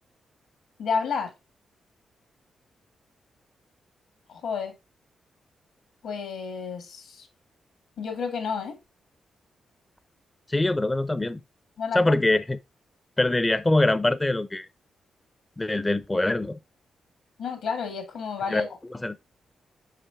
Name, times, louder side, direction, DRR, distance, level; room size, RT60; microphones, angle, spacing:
voice 1, 0.8-1.3 4.3-4.7 6.0-7.3 8.0-8.8 11.8-12.1 17.4-18.7, left 6 dB, 85° left, 1.7 m, -30 dB
voice 2, 10.5-11.4 11.9-12.6 13.2-14.7 15.6-16.6 18.5-18.7 19.0-19.2, left 2 dB, 20° left, 0.4 m, -23 dB
5.6 x 4.8 x 3.4 m
cardioid pair, 65°, 0 cm